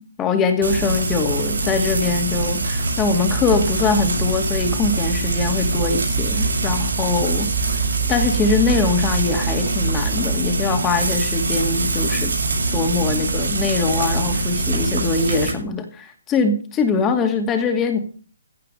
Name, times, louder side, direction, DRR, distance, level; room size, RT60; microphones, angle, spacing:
voice 1, 0.0-7.8 8.1-12.3 12.7-18.0, left 4 dB, 15° left, 5 dB, 2.5 m, -22 dB
Frying (food), 0.6-15.5, right 3 dB, 80° right, 7.3 m, -23 dB
15.5 x 5.8 x 9.1 m, 0.41 s
hypercardioid pair, 150°, 0 cm